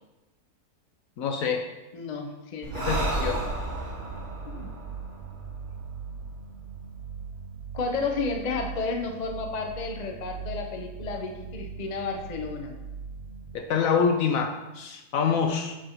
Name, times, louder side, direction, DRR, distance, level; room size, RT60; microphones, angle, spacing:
voice 1, 1.2-1.7 2.8-3.4 13.5-15.7, left 6 dB, 70° left, 4 dB, 0.9 m, -26 dB
voice 2, 1.9-2.9 4.4-4.7 7.7-12.8, left 4 dB, 45° left, 3 dB, 0.5 m, -32 dB
Breathing, 2.6-6.2, right 1 dB, 45° right, 1.5 m, -32 dB
sound 1, 2.7-13.6, right 5 dB, 60° right, 0.5 m, -40 dB
9.2 x 4.8 x 3.0 m, 1.0 s
omnidirectional pair, 1.7 m